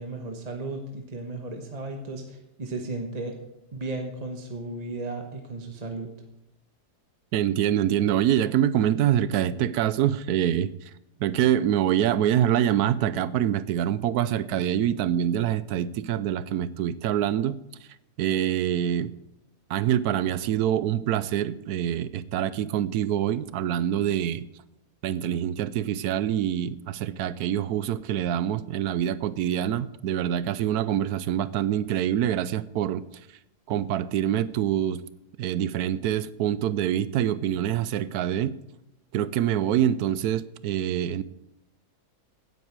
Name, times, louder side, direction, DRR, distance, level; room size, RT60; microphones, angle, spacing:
voice 1, 0.0-3.3 3.7-6.1, right 2 dB, 25° right, 3 dB, 1.2 m, -35 dB
voice 2, 7.3-10.7 11.2-17.6 18.2-19.1 19.7-24.4 25.0-33.0 33.7-35.0 35.4-38.6 39.1-41.2, right 10 dB, 80° right, 16 dB, 1.1 m, -25 dB
16.0 x 9.4 x 4.7 m, 0.87 s
omnidirectional pair, 1.7 m